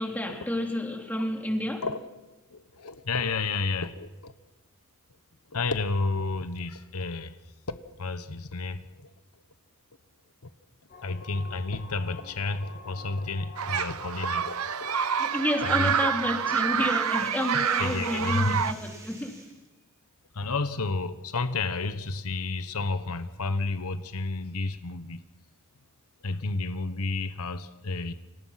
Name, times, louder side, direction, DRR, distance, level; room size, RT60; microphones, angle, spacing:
voice 1, 0.0-1.8 15.2-19.4, left 1 dB, 10° left, 2 dB, 3.2 m, -30 dB
voice 2, 2.5-4.3 5.5-7.4 7.7-9.1 11.0-15.1 15.6-16.1 17.5-18.6 20.3-25.2 26.2-28.1, left 3 dB, 80° left, 10 dB, 1.2 m, -31 dB
sound 1, 10.9-17.2, left 3 dB, 40° left, 1.8 m, -47 dB
sound 2, 13.6-18.7, right 7 dB, 75° right, 0.8 m, -27 dB
sound 3, 16.5-19.7, right 2 dB, 15° right, 4.2 m, -51 dB
29.5 x 26.0 x 5.9 m, 1.0 s
head